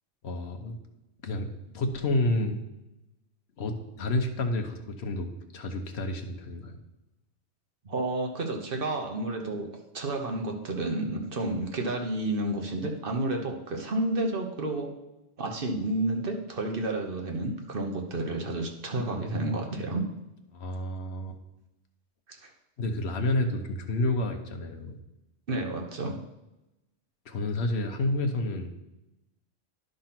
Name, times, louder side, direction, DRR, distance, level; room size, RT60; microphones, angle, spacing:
voice 1, 0.2-0.8 1.2-2.6 3.6-6.8 18.9-19.5 20.5-21.4 22.8-25.0 27.2-28.8, left 2 dB, 65° left, 4 dB, 1.2 m, -30 dB
voice 2, 7.8-9.7 9.9-14.9 15.4-20.1 22.4-22.5 25.5-26.2, right 2 dB, 50° right, 3 dB, 1.2 m, -30 dB
10.5 x 3.9 x 5.8 m, 0.96 s
omnidirectional pair, 1.2 m